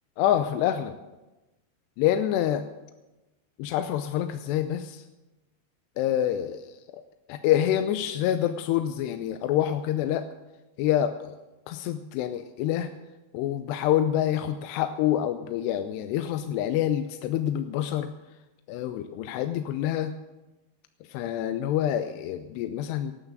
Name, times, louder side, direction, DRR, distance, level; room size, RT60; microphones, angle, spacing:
voice 1, 0.2-0.9 2.0-2.6 3.6-5.0 6.0-6.6 7.3-10.3 10.8-11.3 11.7-12.9 13.3-18.1 18.7-20.1 21.1-23.1, left 11 dB, 80° left, 8 dB, 2.8 m, -26 dB
18.0 x 9.6 x 6.7 m, 1.1 s
omnidirectional pair, 4.9 m